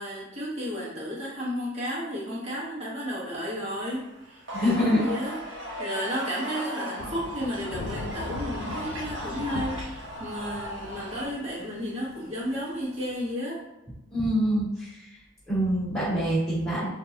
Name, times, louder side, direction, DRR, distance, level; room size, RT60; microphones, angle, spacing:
voice 1, 0.0-13.6, equal, 35° right, -8 dB, 1.3 m, -33 dB
sound 1, 3.5-11.3, equal, 75° right, 0.8 m, -37 dB
voice 2, 4.5-5.1 14.1-15.0 15.5-16.9, equal, ahead, -12 dB, 1.4 m, -25 dB
Thunder / Rain, 7.0-13.3, left 3 dB, 80° left, 0.3 m, -39 dB
3.7 x 2.7 x 2.8 m, 0.93 s
head